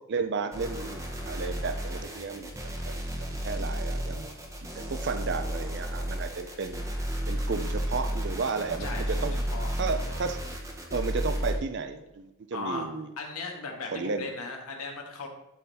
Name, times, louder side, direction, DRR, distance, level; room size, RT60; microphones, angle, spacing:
voice 1, 0.0-4.3 4.8-6.9 7.3-9.4 9.8-10.4 10.9-13.1 13.9-14.3, right 4 dB, 50° right, 8 dB, 0.5 m, -33 dB
sound 1, 0.5-11.6, equal, 15° right, 0.9 m, -33 dB
voice 2, 8.8-9.7 12.5-12.8 13.2-15.3, left 3 dB, 85° left, 1 dB, 1.7 m, -37 dB
11.5 x 3.9 x 4.1 m, 0.92 s
head